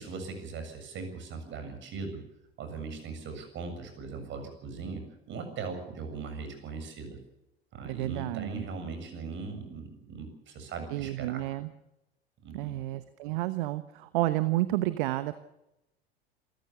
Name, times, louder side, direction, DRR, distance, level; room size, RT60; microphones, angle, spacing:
voice 1, 0.0-2.2 2.6-7.2 7.7-11.4 12.4-12.8, right 4 dB, 40° right, 7 dB, 7.2 m, -39 dB
voice 2, 7.8-8.6 10.9-11.7 12.5-15.4, right 17 dB, 55° right, 13 dB, 1.2 m, -30 dB
27.5 x 15.0 x 7.0 m, 0.92 s
figure-of-eight pair, 75°, 30 cm